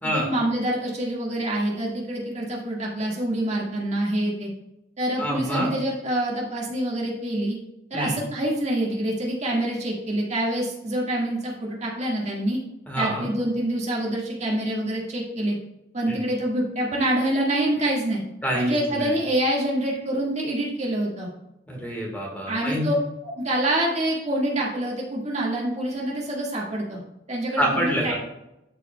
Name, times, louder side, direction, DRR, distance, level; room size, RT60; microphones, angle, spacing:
voice 1, 0.1-4.5 5.0-7.6 7.9-12.6 13.0-15.6 15.9-18.2 18.5-21.3 22.5-22.9 23.2-27.0 27.3-28.1, right 1 dB, 35° right, -3 dB, 1.7 m, -26 dB
voice 2, 5.2-5.7 7.9-8.2 12.9-13.3 16.1-16.2 18.4-19.2 21.7-22.8 27.6-28.1, right 1 dB, 10° left, -1 dB, 1.5 m, -27 dB
12.0 x 5.0 x 2.2 m, 0.88 s
head